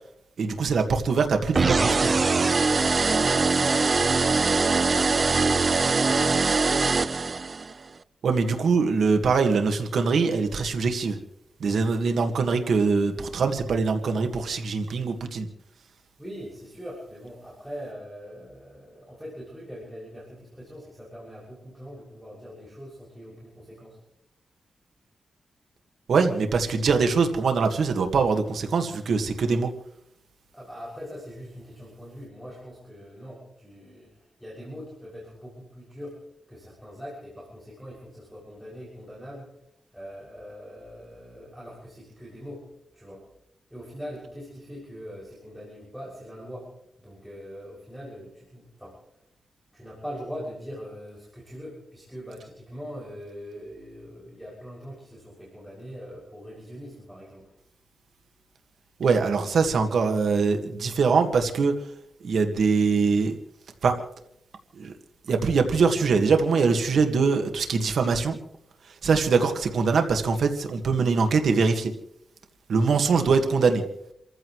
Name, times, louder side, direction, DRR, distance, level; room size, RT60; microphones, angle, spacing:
voice 1, 0.4-2.1 8.2-11.2 11.6-15.5 26.1-29.7 59.0-61.8 62.2-63.4 63.8-64.0 64.8-64.9 65.3-68.4 69.0-71.9 72.7-73.8, right 4 dB, 85° right, 5 dB, 1.7 m, -23 dB
sound 1, 1.6-7.7, right 4 dB, 40° right, 0.5 m, -22 dB
voice 2, 3.0-6.6 16.2-24.0 30.5-36.2 36.5-39.5 39.9-42.6 42.9-43.2 43.7-46.7 47.0-49.0 49.7-57.5, equal, ahead, -6 dB, 6.7 m, -42 dB
29.0 x 15.0 x 3.2 m, 0.75 s
wide cardioid pair, 130°, 0 cm